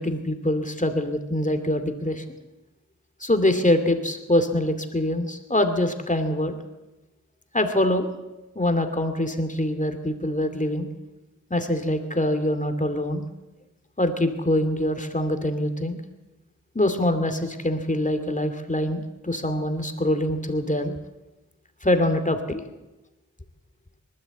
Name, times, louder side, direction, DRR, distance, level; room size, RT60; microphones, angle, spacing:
voice 1, 0.0-2.2 3.2-6.6 7.5-8.1 8.6-10.9 11.5-13.3 14.0-16.0 16.7-20.9 21.8-22.6, left 1 dB, 25° left, 7 dB, 2.6 m, -24 dB
24.5 x 12.5 x 8.4 m, 1.0 s
cardioid pair, 50°, 32 cm